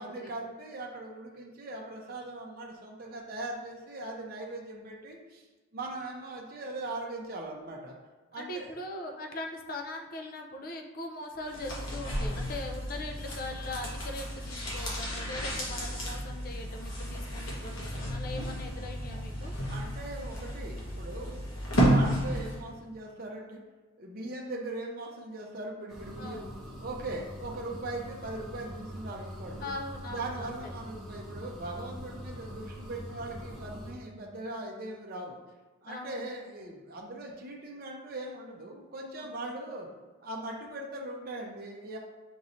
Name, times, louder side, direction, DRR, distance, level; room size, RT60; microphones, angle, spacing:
voice 1, 0.0-5.5 5.7-8.0 8.3-8.7 19.7-21.4 21.8-23.6 24.0-26.5 26.8-29.7 30.1-35.4 35.8-39.9 40.2-42.0, right 2 dB, 45° right, -1 dB, 0.6 m, -40 dB
voice 2, 8.3-19.5 24.4-24.7 26.2-26.4 29.6-30.6 35.9-36.3 39.2-39.5, left 1 dB, 45° left, 3 dB, 0.5 m, -41 dB
sound 1, 11.5-22.7 23.0-23.1, equal, 70° left, 1.1 m, -32 dB
sound 2, 25.9-33.9, equal, ahead, 0.8 m, -43 dB
6.1 x 3.1 x 2.6 m, 1.3 s
head